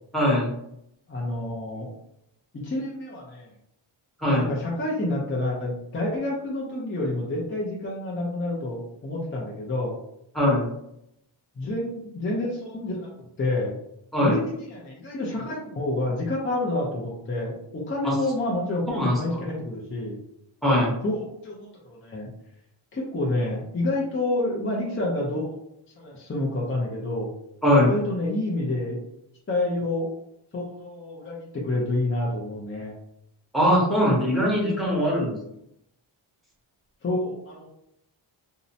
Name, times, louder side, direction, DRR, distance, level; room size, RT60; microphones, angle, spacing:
voice 1, 0.1-0.5 4.2-4.5 10.3-10.7 14.1-14.4 18.0-18.1 18.9-19.2 20.6-20.9 27.6-27.9 33.5-35.4, equal, ahead, -5 dB, 0.9 m, -21 dB
voice 2, 1.1-1.9 2.5-3.5 4.4-10.0 11.6-13.1 13.4-13.8 14.2-18.8 19.1-20.2 21.0-22.3 22.9-25.6 26.0-27.3 27.8-29.0 29.5-30.1 30.5-32.9 37.0-37.7, left 2 dB, 25° left, -3 dB, 0.5 m, -28 dB
2.7 x 2.1 x 2.6 m, 0.78 s
wide cardioid pair, 120°, 49 cm